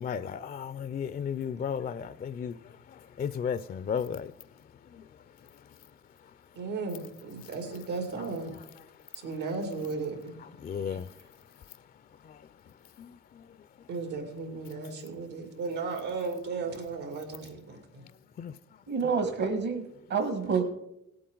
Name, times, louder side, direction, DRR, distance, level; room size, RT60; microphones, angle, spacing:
voice 1, 0.0-2.5 3.2-4.3 10.6-11.1 12.3-12.4 13.0-13.1 18.4-18.5, left 7 dB, 30° left, 0.4 m, -33 dB
voice 2, 6.6-8.5 9.2-10.4 13.9-18.1 19.4-19.5 20.5-20.6, right 4 dB, 90° right, 2.5 m, -35 dB
voice 3, 18.9-19.8 20.1-20.6, right 5 dB, 65° right, 1.5 m, -28 dB
18.0 x 8.6 x 3.9 m
cardioid pair, 90°, 30 cm